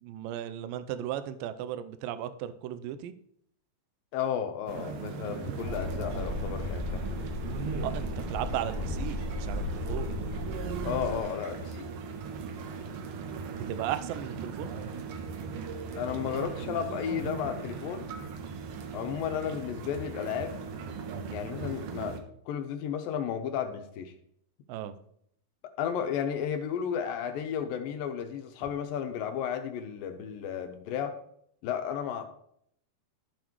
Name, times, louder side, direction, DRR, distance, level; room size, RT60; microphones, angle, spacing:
voice 1, 0.0-3.1 7.8-10.1 13.5-14.7 24.7-25.0, right 11 dB, 90° right, 11 dB, 1.9 m, -36 dB
voice 2, 4.1-7.1 10.8-11.9 16.0-18.1 18.9-20.6 21.3-24.1 25.8-31.1 31.6-32.3, left 8 dB, 80° left, 6 dB, 2.2 m, -33 dB
sound 1, 4.7-22.2, right 5 dB, 75° right, 2.0 m, -38 dB
sound 2, 5.6-11.2, left 2 dB, 5° right, 2.7 m, -35 dB
12.5 x 7.3 x 3.0 m, 0.70 s
omnidirectional pair, 4.5 m